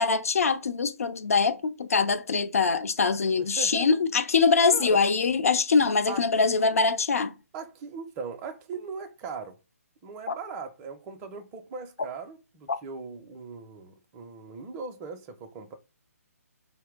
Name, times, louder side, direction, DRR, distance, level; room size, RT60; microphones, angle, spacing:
voice 1, 0.0-7.3 10.3-10.4 12.7-12.8, left 4 dB, 65° left, 0.5 m, -23 dB
voice 2, 3.4-4.0 4.7-5.0 6.1-6.8 7.5-9.6 10.0-15.7, right 4 dB, 20° right, 0.4 m, -39 dB
4.2 x 2.0 x 3.4 m
figure-of-eight pair, 140°, 8 cm